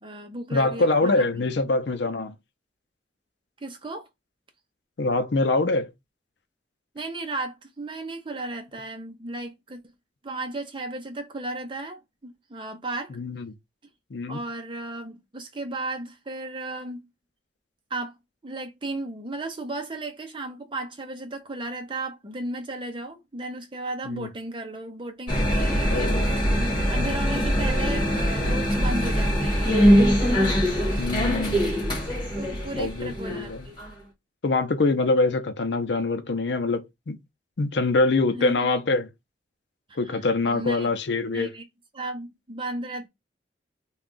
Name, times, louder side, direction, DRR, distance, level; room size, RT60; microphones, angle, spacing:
voice 1, 0.0-1.6 3.6-4.1 6.9-9.8 10.2-13.1 14.3-17.1 17.9-18.1 18.4-26.1 26.4-29.8 32.4-33.8 38.3-38.7 39.9-41.0 41.3-41.6 41.9-43.1, right 2 dB, 30° right, 0.7 m, -35 dB
voice 2, 0.5-2.3 5.0-5.9 13.2-13.5 14.1-14.4 24.1-24.3 25.9-26.3 31.0-31.7 32.7-33.7 34.4-37.2 37.6-39.1 40.0-41.5, left 3 dB, 75° left, 0.6 m, -24 dB
sound 1, 25.3-33.9, equal, 25° left, 1.5 m, -22 dB
3.4 x 2.3 x 3.9 m
head